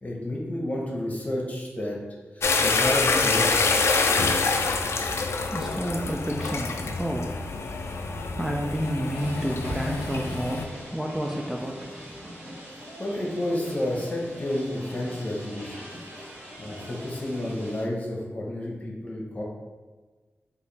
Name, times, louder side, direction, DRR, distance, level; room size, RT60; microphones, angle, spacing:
voice 1, 0.0-2.0 2.3-3.5 13.0-15.8 16.6-19.4, left 1 dB, 30° left, -3 dB, 1.0 m, -30 dB
sound 1, 2.4-10.7, left 4 dB, 75° left, 0.4 m, -26 dB
voice 2, 5.1-12.3, equal, 10° right, -1 dB, 0.4 m, -31 dB
sound 2, 9.1-17.8, equal, 70° right, 1.5 m, -43 dB
4.7 x 2.6 x 3.3 m, 1.3 s
wide cardioid pair, 95°, 5 cm